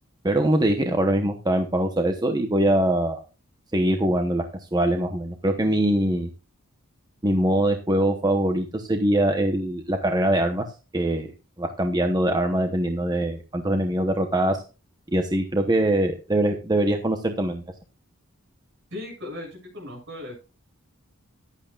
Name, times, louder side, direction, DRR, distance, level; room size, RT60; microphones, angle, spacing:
voice 1, 0.2-3.2 3.7-4.4 4.7-6.3 7.2-10.6 10.9-11.3 11.6-14.6 15.1-17.6, right 1 dB, 20° right, 5 dB, 0.9 m, -23 dB
voice 2, 18.9-20.3, left 2 dB, 60° right, 0 dB, 7.6 m, -37 dB
14.5 x 11.0 x 2.4 m, 0.31 s
head